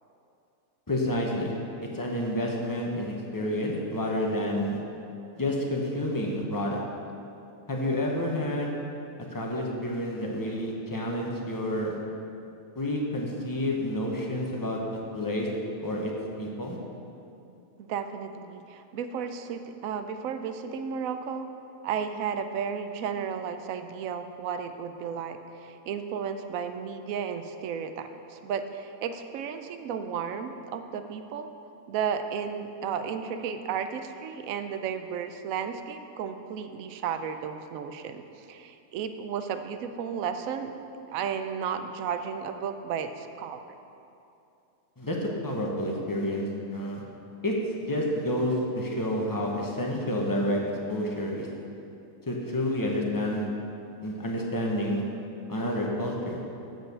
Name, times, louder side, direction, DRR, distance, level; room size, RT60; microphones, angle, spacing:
voice 1, 0.9-1.5 1.9-4.8 5.4-6.8 7.7-8.7 9.3-12.0 12.8-15.5 15.8-16.1 16.4-16.8 45.0-47.0 47.4-47.5 47.8-50.6 50.9-51.5 52.3-53.5 54.0-55.0 55.5-56.4, left 1 dB, 20° left, -1 dB, 0.8 m, -29 dB
voice 2, 17.8-21.5 21.8-31.5 31.9-40.7 41.1-43.6, right 7 dB, 80° right, 8 dB, 1.0 m, -33 dB
7.7 x 4.8 x 6.6 m, 2.7 s
omnidirectional pair, 1.4 m